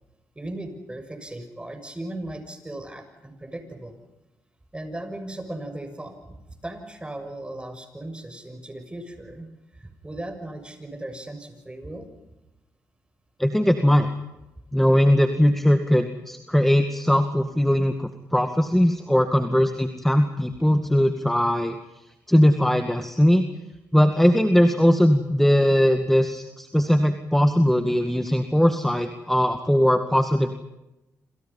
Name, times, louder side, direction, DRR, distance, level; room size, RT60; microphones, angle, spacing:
voice 1, 0.3-3.9 4.7-6.4 6.6-12.1 19.4-19.9, right 1 dB, 15° right, 8 dB, 6.6 m, -37 dB
voice 2, 13.4-14.1 14.7-21.8 22.3-23.5 23.9-30.5, equal, 5° left, 7 dB, 2.1 m, -20 dB
28.0 x 26.5 x 5.7 m, 0.97 s
cardioid pair, 70°, 6 cm